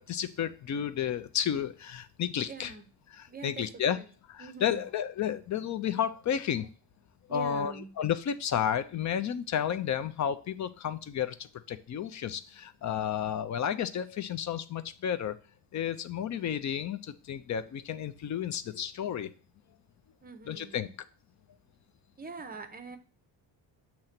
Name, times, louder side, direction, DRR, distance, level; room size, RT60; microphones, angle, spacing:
voice 1, 0.0-2.7 3.1-4.0 4.3-6.7 7.3-15.4 15.7-19.3 20.5-20.9, left 9 dB, 45° left, 12 dB, 0.4 m, -32 dB
voice 2, 2.5-2.8 3.3-3.7 4.0-4.1 4.4-4.8 7.3-7.9 20.2-20.9 22.2-23.0, right 5 dB, 20° right, 9 dB, 0.6 m, -43 dB
7.7 x 2.9 x 5.8 m, 0.37 s
cardioid pair, 170°, 43 cm